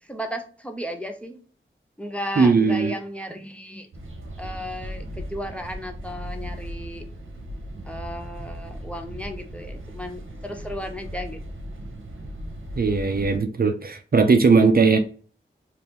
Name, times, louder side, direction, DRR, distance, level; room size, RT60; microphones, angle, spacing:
voice 1, 0.1-1.4 2.0-3.9 4.4-7.1 7.8-11.4, equal, 5° left, 4 dB, 0.5 m, -34 dB
voice 2, 2.4-2.9 12.8-15.0, right 4 dB, 50° right, 6 dB, 0.5 m, -18 dB
sound 1, 3.9-13.4, equal, 80° right, 0.8 m, -37 dB
2.9 x 2.5 x 3.4 m, 0.40 s
wide cardioid pair, 80°, 20 cm